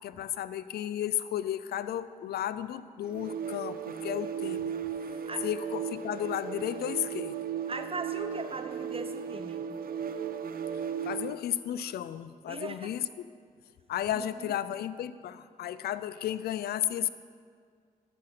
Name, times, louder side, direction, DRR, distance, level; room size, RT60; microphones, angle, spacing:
voice 1, 0.0-4.7 5.4-7.4 11.0-13.3 13.9-17.1, left 11 dB, 80° left, 15 dB, 0.4 m, -33 dB
sound 1, 3.1-11.5, right 8 dB, 70° right, 0.6 m, -36 dB
voice 2, 7.7-9.6 12.5-12.9 14.1-14.6, right 3 dB, 35° right, 8 dB, 1.0 m, -39 dB
11.5 x 5.9 x 7.5 m, 2.1 s
supercardioid pair, 50°, 16 cm